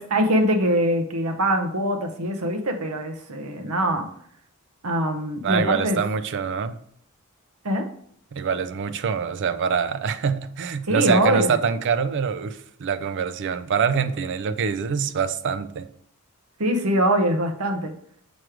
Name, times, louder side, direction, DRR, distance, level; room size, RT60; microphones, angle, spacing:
voice 1, 0.0-4.1 4.8-6.0 7.6-7.9 10.9-11.6 16.6-17.9, right 1 dB, 75° right, 0.9 m, -23 dB
voice 2, 5.4-6.8 8.3-15.9, right 6 dB, 55° right, 0.4 m, -25 dB
6.2 x 3.1 x 4.8 m
head